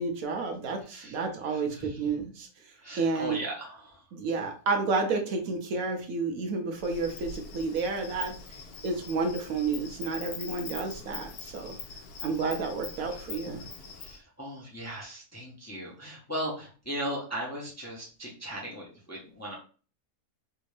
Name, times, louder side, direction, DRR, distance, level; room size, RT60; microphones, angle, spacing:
voice 1, 0.0-2.5 3.0-3.4 4.1-8.3 8.8-11.8 12.2-13.7, right 4 dB, 70° right, 4 dB, 1.1 m, -30 dB
voice 2, 1.5-1.9 2.8-4.0 13.1-13.2 14.0-19.6, equal, 15° left, -4 dB, 0.7 m, -38 dB
Insect, 6.8-14.2, left 5 dB, 75° left, 1.2 m, -43 dB
3.3 x 2.6 x 3.2 m, 0.38 s
omnidirectional pair, 1.6 m